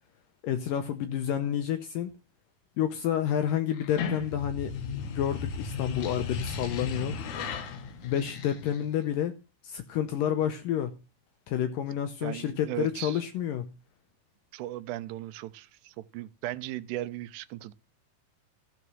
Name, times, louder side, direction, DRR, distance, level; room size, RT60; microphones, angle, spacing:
voice 1, 0.4-2.1 2.8-4.7 5.0-7.2 8.0-9.3 9.6-10.9 11.5-13.7, left 10 dB, 80° left, 2.0 m, -29 dB
sound 1, 3.7-9.0, left 5 dB, 60° left, 2.1 m, -36 dB
voice 2, 12.2-13.2 14.5-17.7, right 15 dB, 85° right, 2.8 m, -37 dB
14.5 x 6.7 x 6.1 m
omnidirectional pair, 4.7 m